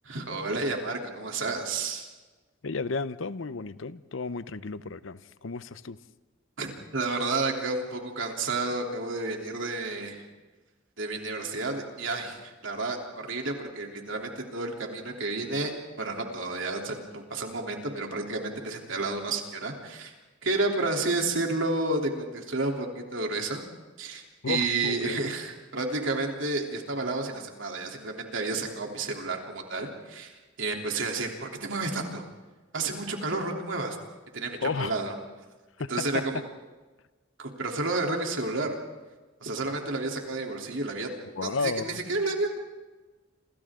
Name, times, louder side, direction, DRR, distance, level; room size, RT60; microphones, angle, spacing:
voice 1, 0.0-2.1 6.6-10.3 11.0-15.7 16.0-20.1 20.4-23.6 24.0-30.3 30.6-32.2 32.7-34.0 34.3-35.1 35.9-36.4 37.4-38.7 39.4-41.1 41.4-42.6, right 3 dB, 70° right, 3.3 m, -31 dB
voice 2, 2.6-6.0 24.4-25.2 34.6-35.0 35.8-35.9 41.4-42.0, left 4 dB, 70° left, 0.7 m, -33 dB
28.0 x 27.5 x 3.8 m
head